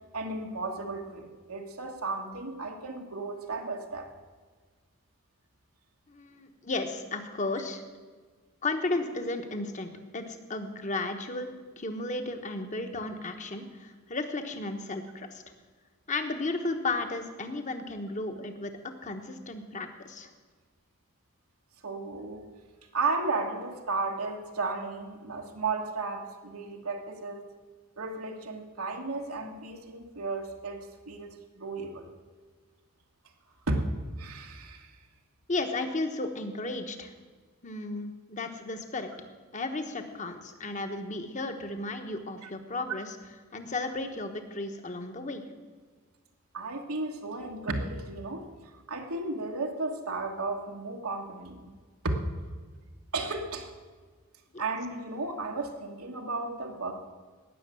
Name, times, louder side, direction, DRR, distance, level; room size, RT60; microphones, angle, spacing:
voice 1, 0.1-4.1 21.8-22.5 22.9-27.5 28.0-32.0 33.7-33.8 34.2-34.9 42.4-42.5 46.5-48.4 48.9-51.8 52.0-52.2 53.1-53.7 54.6-57.1, right 3 dB, 85° right, 1 dB, 1.5 m, -34 dB
voice 2, 6.1-7.8 8.6-15.4 16.1-18.7 19.0-20.3 35.5-37.1 37.6-39.1 39.5-43.1 43.5-45.4, left 2 dB, 35° left, 7 dB, 1.2 m, -34 dB
17.5 x 6.6 x 7.8 m, 1.4 s
head